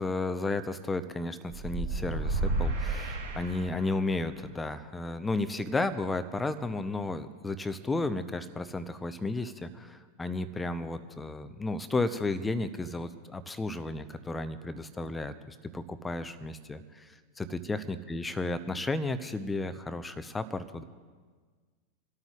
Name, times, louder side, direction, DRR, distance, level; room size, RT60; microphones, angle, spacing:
voice 1, 0.0-17.1 17.4-20.8, left 2 dB, 10° left, 11 dB, 0.7 m, -33 dB
sound 1, 1.5-4.1, right 2 dB, 70° right, 3.4 m, -32 dB
28.5 x 13.0 x 2.5 m, 1.5 s
figure-of-eight pair, 90°, 0 cm